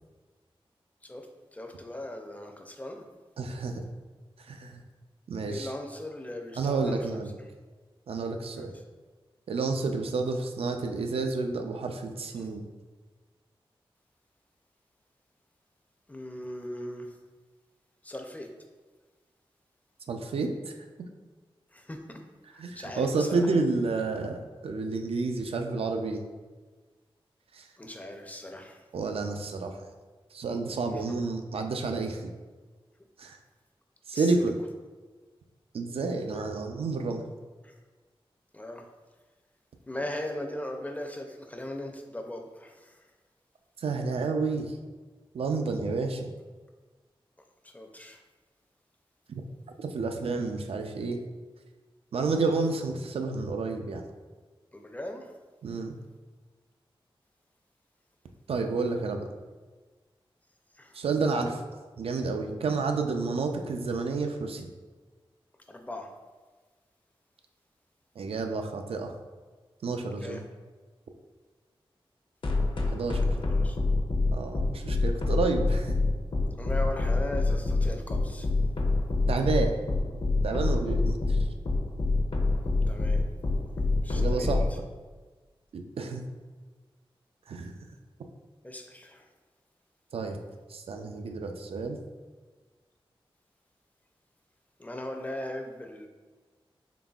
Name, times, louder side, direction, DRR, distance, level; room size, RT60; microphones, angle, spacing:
voice 1, 1.5-3.0 5.5-7.2 8.5-8.6 16.1-17.1 18.0-18.5 21.7-22.2 22.8-23.5 27.8-28.8 30.9-31.2 34.1-34.3 38.5-38.8 39.9-42.7 47.7-48.2 54.7-55.3 60.8-60.9 65.7-66.1 70.2-70.4 73.4-73.8 76.6-78.5 82.6-83.2 84.0-84.5 88.6-89.2 94.8-96.1, left 1 dB, 15° left, 3 dB, 0.4 m, -38 dB
voice 2, 3.4-3.8 4.5-4.8 5.3-5.7 6.5-7.3 8.1-8.7 9.5-12.7 20.1-20.7 22.5-26.2 27.5-27.7 28.9-29.8 30.3-32.2 33.2-33.4 34.1-34.5 35.7-37.2 43.8-44.8 45.3-46.3 49.8-51.2 52.1-54.0 55.6-55.9 58.5-59.3 60.9-61.6 62.0-64.7 68.2-69.1 69.8-70.4 72.9-73.4 74.3-76.0 79.3-79.7 80.4-81.4 84.2-84.7 85.7-86.2 87.5-87.7 90.1-90.4 90.7-92.0, right 3 dB, 90° right, 4 dB, 0.4 m, -30 dB
sound 1, 72.4-84.7, left 3 dB, 60° left, 0.6 m, -25 dB
3.9 x 3.5 x 2.3 m, 1.3 s
wide cardioid pair, 85°, 10 cm